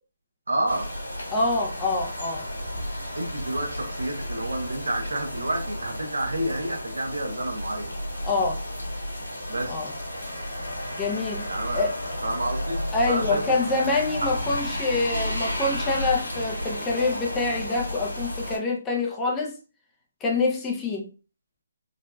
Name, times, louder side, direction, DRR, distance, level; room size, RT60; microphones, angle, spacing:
voice 1, 0.5-0.9 3.1-7.9 9.5-9.8 11.5-11.9 12.2-13.7 14.2-14.3, right 1 dB, 80° right, 1.0 m, -29 dB
sound 1, 0.7-18.6, equal, 90° left, 1.7 m, -32 dB
voice 2, 1.3-2.5 8.2-8.6 9.7-9.9 11.0-12.0 12.9-19.6 20.2-21.1, left 3 dB, 15° left, 0.6 m, -26 dB
3.9 x 2.3 x 2.2 m
figure-of-eight pair, 150°, 0 cm